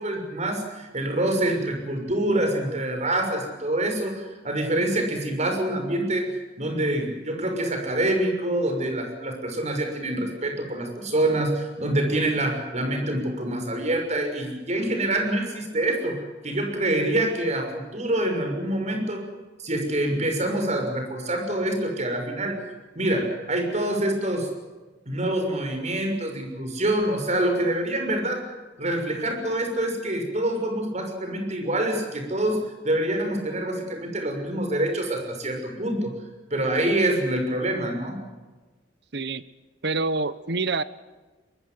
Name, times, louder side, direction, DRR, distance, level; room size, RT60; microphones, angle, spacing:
voice 1, 0.0-6.3 6.6-19.2 19.6-22.6 22.9-24.5 25.1-28.4 28.8-36.1 36.5-38.2, right 1 dB, 40° right, 4 dB, 6.3 m, -26 dB
voice 2, 39.8-40.8, right 3 dB, 65° right, 16 dB, 1.1 m, -26 dB
23.0 x 22.0 x 7.9 m, 1.2 s
head